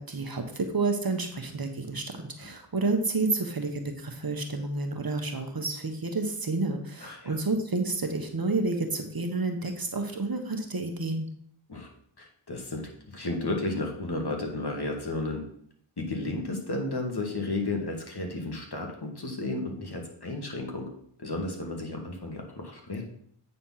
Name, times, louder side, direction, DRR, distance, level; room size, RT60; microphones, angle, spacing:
voice 1, 0.0-11.3, right 3 dB, 45° right, 5 dB, 1.3 m, -30 dB
voice 2, 7.0-7.4 11.7-11.9 12.2-15.4 16.0-20.9 21.2-23.0, left 2 dB, 50° left, 1 dB, 2.1 m, -33 dB
8.6 x 4.3 x 5.7 m, 0.66 s
cardioid pair, 40°, 49 cm